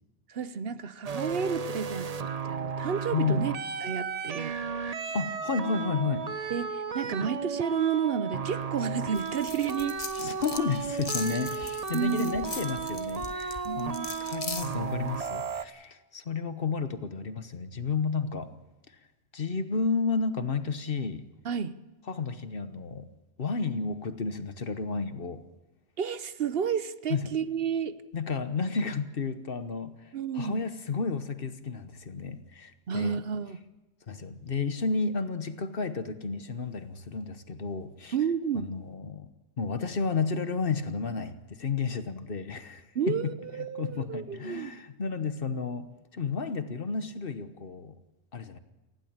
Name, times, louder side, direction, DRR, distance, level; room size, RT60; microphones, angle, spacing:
voice 1, 0.3-3.5 3.8-4.6 6.5-9.9 11.9-12.4 13.6-14.1 21.4-21.7 26.0-27.9 30.1-30.6 32.9-33.6 38.1-38.7 42.9-44.8, right 7 dB, 60° right, 13 dB, 1.0 m, -31 dB
sound 1, 1.0-15.6, right 6 dB, 40° right, 0.8 m, -34 dB
voice 2, 3.1-3.5 5.1-6.3 10.2-18.5 19.3-21.3 22.1-23.1 23.4-25.4 27.1-27.2 28.1-30.0 30.3-33.2 34.1-38.1 38.6-39.3 39.6-43.3 43.8-45.9 46.1-47.9 48.3-48.6, left 4 dB, 55° left, 11 dB, 1.3 m, -32 dB
sound 2, 9.1-15.3, left 4 dB, 35° left, 1.2 m, -40 dB
19.5 x 15.5 x 8.9 m, 1.1 s
omnidirectional pair, 1.1 m